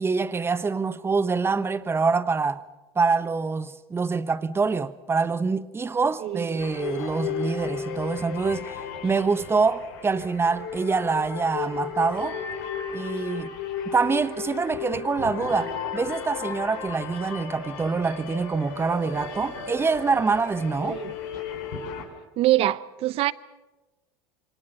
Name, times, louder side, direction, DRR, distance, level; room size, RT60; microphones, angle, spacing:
voice 1, 0.0-2.6 2.9-12.4 12.9-13.6 13.9-21.0, right 4 dB, 20° right, 1.2 m, -25 dB
voice 2, 6.2-6.6 20.9-21.1 22.4-23.3, right 15 dB, 50° right, 0.9 m, -24 dB
sound 1, 6.6-22.0, left 7 dB, 70° left, 5.3 m, -34 dB
28.0 x 24.0 x 5.7 m
hypercardioid pair, 90°, 13 cm